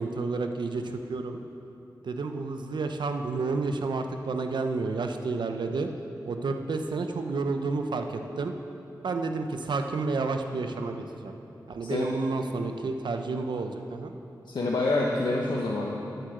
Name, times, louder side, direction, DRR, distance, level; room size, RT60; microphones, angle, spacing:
voice 1, 0.0-1.4 2.0-5.9 6.3-8.5 9.0-11.4 11.7-14.1, right 3 dB, 85° right, 6 dB, 0.7 m, -30 dB
voice 2, 14.5-16.0, left 2 dB, 75° left, -2 dB, 1.0 m, -27 dB
9.6 x 7.5 x 7.8 m, 2.9 s
cardioid pair, 55°, 8 cm